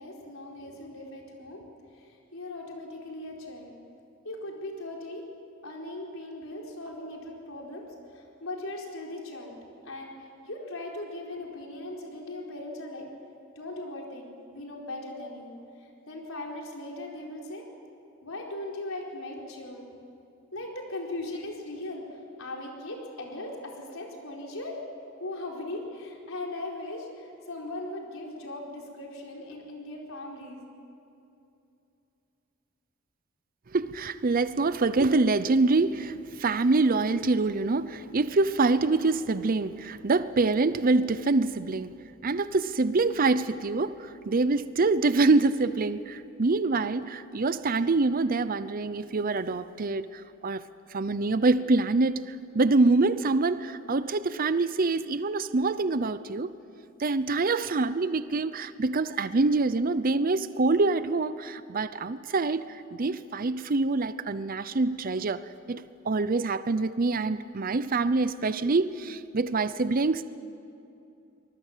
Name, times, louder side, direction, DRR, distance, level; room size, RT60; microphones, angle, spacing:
voice 1, 0.0-1.6 1.9-3.8 4.2-5.2 5.6-7.8 8.1-9.6 9.8-13.1 13.6-17.6 18.2-19.9 20.5-22.0 22.4-24.8 25.2-30.6, left 2 dB, 80° left, 0 dB, 4.4 m, -39 dB
voice 2, 33.7-41.9 42.2-50.6 50.9-56.5 57.0-65.4 65.7-70.2, right 3 dB, 45° right, 14 dB, 0.6 m, -25 dB
24.5 x 20.5 x 7.4 m, 2.7 s
head